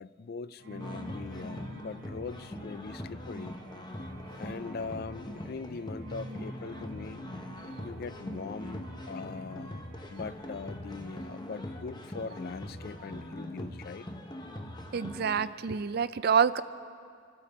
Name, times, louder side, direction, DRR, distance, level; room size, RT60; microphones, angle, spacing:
voice 1, 0.0-3.6 4.4-7.2 7.8-9.8 10.1-14.0, left 4 dB, 45° left, 16 dB, 0.3 m, -41 dB
sound 1, 0.6-13.9, right 1 dB, 75° right, 1.0 m, -49 dB
sound 2, 0.8-15.5, left 1 dB, 20° left, 0.9 m, -42 dB
voice 2, 14.9-16.6, right 7 dB, 45° right, 15 dB, 0.4 m, -27 dB
26.5 x 13.0 x 4.2 m, 2.3 s
head